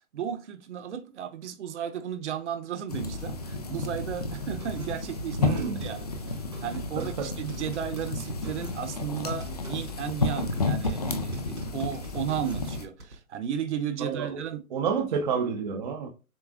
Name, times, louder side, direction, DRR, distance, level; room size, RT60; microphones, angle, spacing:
voice 1, 0.1-6.3 6.6-14.6, right 9 dB, 50° right, 0.9 m, -34 dB
sound 1, 2.9-12.9, left 3 dB, 30° left, 0.4 m, -32 dB
sound 2, 4.6-13.1, right 1 dB, 90° right, 2.8 m, -46 dB
voice 2, 5.4-5.8 7.0-7.3 14.0-14.4 14.7-16.1, right 6 dB, 30° right, 0.6 m, -29 dB
7.2 x 3.0 x 2.4 m
hypercardioid pair, 140°, 44 cm